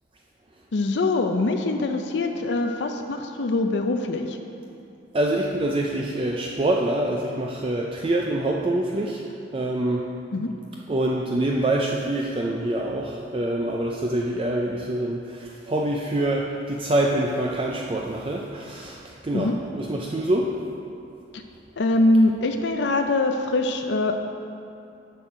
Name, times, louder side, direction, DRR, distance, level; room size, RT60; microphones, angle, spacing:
voice 1, 0.7-4.4 10.3-10.5 19.3-19.6 21.8-24.1, left 2 dB, 65° left, 5 dB, 0.5 m, -23 dB
voice 2, 5.1-10.1 10.9-20.5, right 1 dB, 30° right, -1 dB, 0.4 m, -25 dB
7.5 x 6.2 x 5.5 m, 2.7 s
head